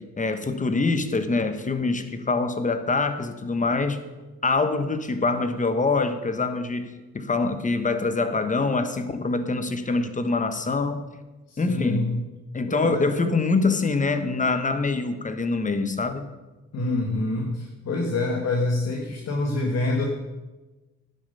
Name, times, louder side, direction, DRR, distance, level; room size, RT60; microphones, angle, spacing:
voice 1, 0.0-4.0 4.4-11.1 11.6-12.1 12.5-16.3, left 3 dB, 25° left, 10 dB, 1.2 m, -25 dB
voice 2, 11.5-12.2 12.7-13.1 16.7-20.0, left 2 dB, 55° left, 0 dB, 1.7 m, -26 dB
11.0 x 9.1 x 5.5 m, 1.2 s
cardioid pair, 90°, 30 cm